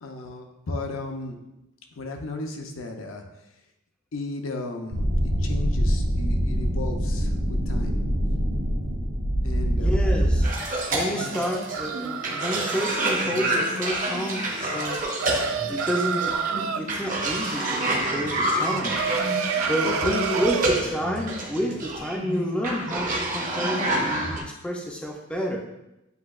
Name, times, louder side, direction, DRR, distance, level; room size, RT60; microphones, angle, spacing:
voice 1, 0.0-1.4 1.9-3.2 4.1-8.0 9.4-10.2 19.6-20.4, left 2 dB, 65° left, 3 dB, 0.6 m, -34 dB
sound 1, 4.9-10.5, equal, 60° right, 1.4 m, -24 dB
voice 2, 9.8-10.5 10.9-15.1 15.7-19.0 19.7-25.6, equal, 5° left, -1 dB, 0.4 m, -30 dB
Cough, 10.4-24.4, right 1 dB, 40° right, 0.7 m, -28 dB
sound 2, 10.8-12.8 14.8-16.8 18.6-20.7, right 7 dB, 75° right, 0.3 m, -29 dB
7.9 x 2.7 x 2.4 m, 0.90 s
head